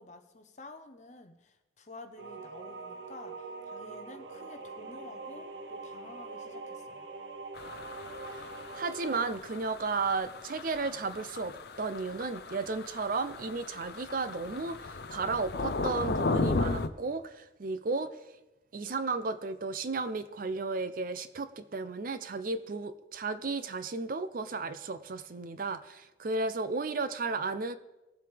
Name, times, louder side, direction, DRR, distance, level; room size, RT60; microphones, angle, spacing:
voice 1, 0.0-7.1, left 2 dB, 40° left, 7 dB, 0.9 m, -50 dB
sound 1, 2.2-9.3, right 3 dB, 70° right, 0.9 m, -43 dB
sound 2, 7.5-16.9, left 3 dB, 55° left, 0.5 m, -36 dB
voice 2, 8.7-18.2 18.7-27.7, right 3 dB, 45° right, 12 dB, 0.5 m, -34 dB
19.0 x 7.6 x 3.4 m, 1.0 s
head